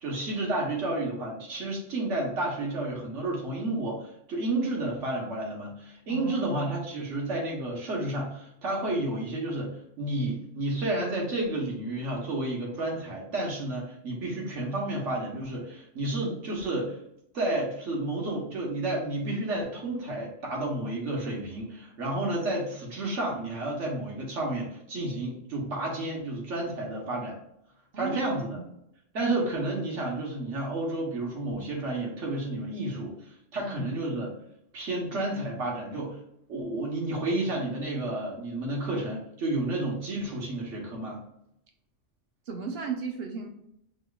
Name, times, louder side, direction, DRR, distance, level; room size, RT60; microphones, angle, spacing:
voice 1, 0.0-17.0 17.3-27.4 28.0-28.6 29.1-34.3 34.7-36.2 36.5-41.2, right 2 dB, 90° right, -2 dB, 1.4 m, -31 dB
voice 2, 6.1-6.6 27.9-28.7 33.6-33.9 42.5-43.5, right 5 dB, 60° right, 3 dB, 1.0 m, -35 dB
6.2 x 3.1 x 2.3 m, 0.77 s
omnidirectional pair, 1.2 m